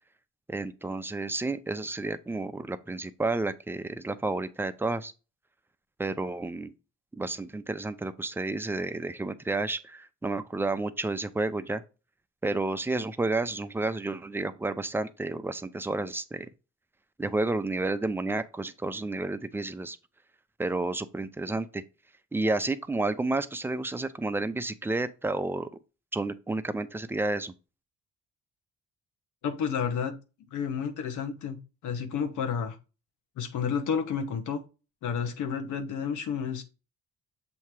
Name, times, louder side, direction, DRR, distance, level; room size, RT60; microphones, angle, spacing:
voice 1, 0.5-5.1 6.0-6.7 7.1-11.8 12.4-16.5 17.2-20.0 20.6-21.8 22.3-25.7 26.1-27.5, right 2 dB, 5° right, 0.5 m, -31 dB
voice 2, 29.4-30.1 30.5-32.8 33.4-34.6 35.0-36.6, left 7 dB, 80° left, 1.1 m, -31 dB
7.1 x 2.8 x 4.6 m
cardioid pair, 90°, 30 cm